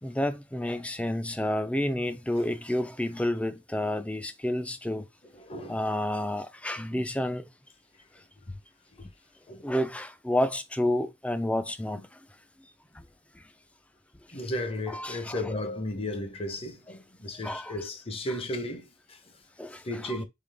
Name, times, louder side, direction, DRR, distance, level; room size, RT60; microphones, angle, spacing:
voice 1, 0.0-5.1 5.7-7.5 9.6-12.0 13.0-13.1 14.9-15.4 17.4-17.7 19.6-19.8, left 1 dB, 5° left, 0.4 m, -30 dB
voice 2, 5.3-5.8 6.9-7.0 8.0-8.1 8.4-8.6 8.9-9.1 9.5-9.7 11.9-12.0 14.3-19.4 19.8-20.2, left 1 dB, 30° left, 0.7 m, -35 dB
4.0 x 3.8 x 3.4 m
head